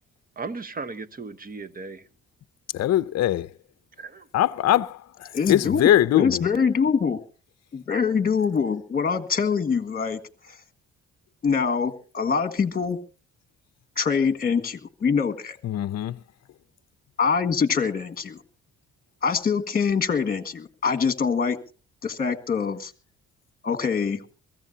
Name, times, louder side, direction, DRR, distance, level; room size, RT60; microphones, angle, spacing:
voice 1, 0.4-2.1 4.0-4.3, right 4 dB, 30° right, 1.1 m, -36 dB
voice 2, 2.7-3.5 4.3-6.4 15.6-16.2, left 12 dB, 60° left, 0.6 m, -22 dB
voice 3, 5.3-5.8 6.1-7.2 7.7-10.2 10.5-10.6 11.4-13.0 14.0-15.6 17.2-18.4 19.2-21.6 22.0-22.9 23.6-24.2, left 6 dB, 30° left, 1.8 m, -24 dB
22.5 x 15.0 x 2.8 m
cardioid pair, 90°, 30 cm